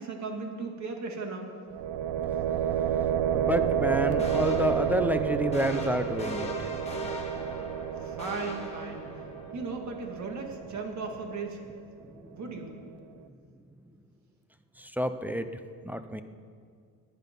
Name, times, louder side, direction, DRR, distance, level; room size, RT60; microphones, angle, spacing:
voice 1, 0.0-1.5 8.0-9.2 9.5-11.6 12.3-12.8, right 4 dB, 45° right, 3 dB, 2.2 m, -36 dB
sound 1, 1.7-11.6, right 9 dB, 60° right, 0.7 m, -30 dB
voice 2, 3.3-6.5 15.0-15.5 15.9-16.2, equal, 5° right, 10 dB, 0.4 m, -28 dB
sound 2, 4.2-9.5, left 2 dB, 15° left, 1.8 m, -40 dB
19.5 x 10.0 x 5.4 m, 2.2 s
cardioid pair, 150°, 40 cm